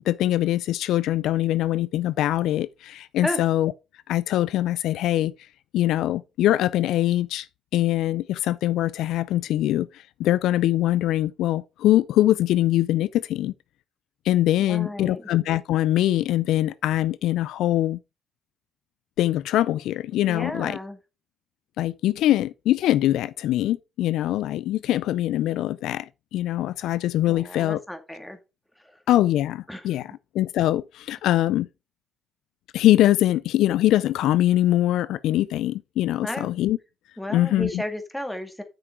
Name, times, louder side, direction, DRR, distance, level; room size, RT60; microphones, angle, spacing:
voice 1, 0.0-3.7 4.1-5.3 5.7-7.5 7.7-13.5 14.3-18.0 19.2-20.8 21.8-27.8 29.1-30.1 30.3-31.7 32.7-36.8 37.3-37.8, left 14 dB, 85° left, 0.4 m, -23 dB
voice 2, 14.6-15.3 20.3-21.0 27.3-28.4 28.8-29.0 29.7-29.9 36.2-36.5 37.2-38.6, left 1 dB, 5° left, 2.2 m, -33 dB
7.8 x 6.1 x 4.4 m
cardioid pair, 90°, 0 cm